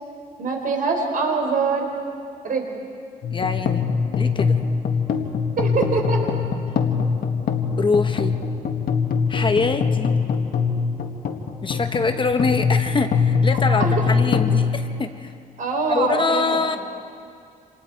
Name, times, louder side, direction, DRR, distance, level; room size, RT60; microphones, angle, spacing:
voice 1, 0.4-1.9 2.4-2.6 5.6-6.2 13.7-14.1 15.6-16.6, right 4 dB, 65° right, 2 dB, 3.9 m, -23 dB
sound 1, 3.2-15.6, left 5 dB, 75° left, 1.6 m, -23 dB
voice 2, 3.3-3.9 4.2-4.6 7.8-8.3 9.3-10.2 11.6-15.3 15.9-16.8, left 4 dB, 30° left, 7 dB, 1.0 m, -24 dB
28.0 x 27.0 x 4.6 m, 2.4 s
cardioid pair, 125°, 15 cm